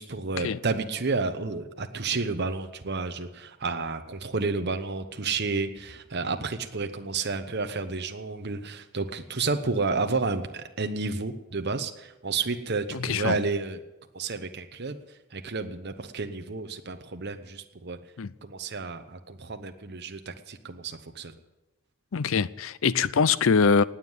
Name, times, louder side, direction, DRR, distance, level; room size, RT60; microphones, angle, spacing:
voice 1, 0.0-13.8 14.1-15.0 15.3-18.0 18.4-21.3, right 4 dB, 50° right, 1.0 m, -31 dB
voice 2, 12.9-13.4 18.2-18.3 22.1-23.8, left 5 dB, 60° left, 0.5 m, -23 dB
19.0 x 7.4 x 9.7 m
head